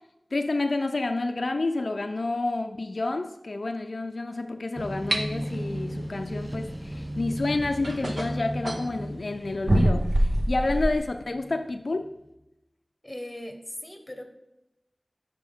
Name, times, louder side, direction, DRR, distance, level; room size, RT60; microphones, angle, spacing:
voice 1, 0.3-12.2, left 2 dB, 75° left, 6 dB, 0.4 m, -29 dB
sound 1, 4.8-12.3, equal, ahead, 0.6 m, -36 dB
sound 2, 5.1-5.2 7.1-7.2 7.8-8.9 9.7-11.0, right 1 dB, 60° right, 0.8 m, -24 dB
voice 2, 13.0-14.3, left 1 dB, 20° left, 5 dB, 1.2 m, -39 dB
11.5 x 5.3 x 3.5 m, 0.93 s
wide cardioid pair, 50°, 0 cm